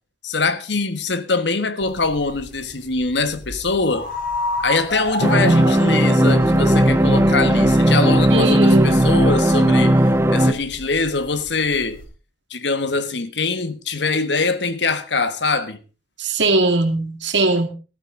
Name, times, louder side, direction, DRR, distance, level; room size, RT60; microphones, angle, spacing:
voice 1, 0.2-4.1 4.6-10.0 10.3-12.0 12.5-15.8, left 3 dB, 75° left, 1.4 m, -23 dB
sound 1, 1.8-12.0, left 1 dB, 50° left, 3.9 m, -31 dB
sound 2, 5.2-10.5, right 1 dB, 15° right, 0.8 m, -16 dB
voice 2, 5.4-5.8 8.3-9.1 16.2-17.7, right 2 dB, 80° right, 2.4 m, -20 dB
14.5 x 14.0 x 3.8 m
head